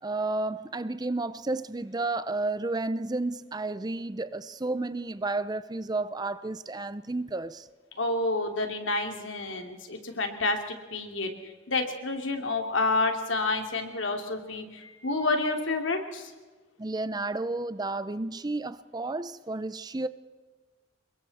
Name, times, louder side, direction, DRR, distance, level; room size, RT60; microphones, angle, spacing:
voice 1, 0.0-7.7 16.8-20.1, right 2 dB, 20° right, 0.6 m, -32 dB
voice 2, 8.0-11.3 11.7-16.3, left 2 dB, 90° left, 2.9 m, -29 dB
27.5 x 22.5 x 4.3 m
head